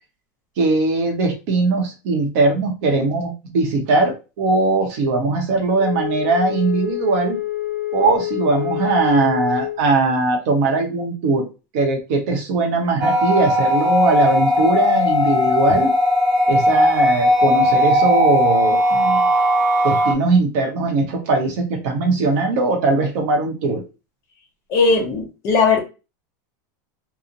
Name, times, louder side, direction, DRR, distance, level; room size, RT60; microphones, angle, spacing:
voice 1, 0.6-7.4 7.9-11.5 11.7-15.9 16.5-19.3 19.8-23.8, right 3 dB, 45° right, 3 dB, 0.8 m, -20 dB
Wind instrument woodwind instrument, 5.7-9.9, left 15 dB, 55° left, 0.9 m, -27 dB
sound 1, 13.0-20.1, left 1 dB, 75° right, 0.9 m, -17 dB
voice 2, 24.7-25.8, left 4 dB, 25° left, 2 dB, 0.5 m, -17 dB
2.8 x 2.1 x 2.5 m, 0.29 s
supercardioid pair, 180°, 10 cm